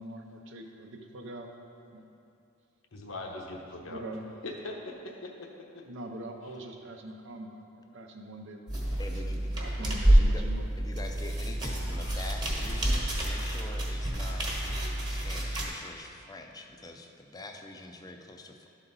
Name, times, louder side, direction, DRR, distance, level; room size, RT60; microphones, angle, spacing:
voice 1, 0.0-1.5 1.9-2.1 3.8-4.2 5.9-10.7, right 1 dB, 65° right, 3 dB, 0.7 m, -43 dB
voice 2, 2.9-4.0 4.4-5.8 6.4-6.5 11.9-12.2, left 2 dB, 85° left, 0 dB, 0.9 m, -41 dB
sound 1, 8.7-15.7, right 1 dB, 20° right, 1.2 m, -28 dB
voice 3, 9.0-9.5 10.1-10.4 10.8-14.5 15.1-18.7, left 2 dB, 20° left, 4 dB, 0.5 m, -44 dB
11.5 x 4.1 x 4.0 m, 2.7 s
head